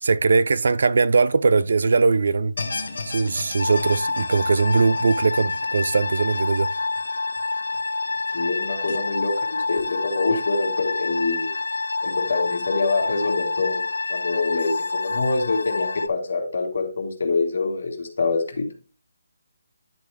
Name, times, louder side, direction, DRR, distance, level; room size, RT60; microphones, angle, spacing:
voice 1, 0.0-2.5 3.1-6.7, right 4 dB, 50° right, 0.3 m, -20 dB
sound 1, 2.6-7.8 8.2-8.3 8.9-9.0, left 3 dB, 65° left, 0.9 m, -36 dB
sound 2, 3.6-16.1, left 3 dB, 85° left, 0.4 m, -27 dB
voice 2, 8.3-11.5 12.0-13.8 14.1-18.6, left 3 dB, 50° left, 1.6 m, -25 dB
9.7 x 4.0 x 3.4 m
hypercardioid pair, 175°, 0 cm